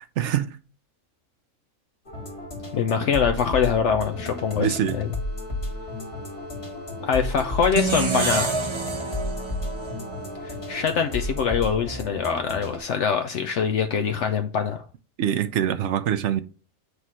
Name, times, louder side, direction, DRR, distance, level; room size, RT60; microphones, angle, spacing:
voice 1, 0.2-0.6 4.6-5.0 15.2-16.4, right 10 dB, 70° right, 0.8 m, -24 dB
sound 1, 2.1-12.8, left 1 dB, 50° left, 2.1 m, -33 dB
voice 2, 2.7-5.1 7.0-8.5 10.4-14.8, left 7 dB, 70° left, 0.9 m, -24 dB
sound 2, 4.0-11.5, left 4 dB, 90° right, 2.9 m, -43 dB
sound 3, 7.7-10.9, right 4 dB, 35° right, 0.5 m, -28 dB
8.2 x 3.1 x 5.5 m
omnidirectional pair, 1.4 m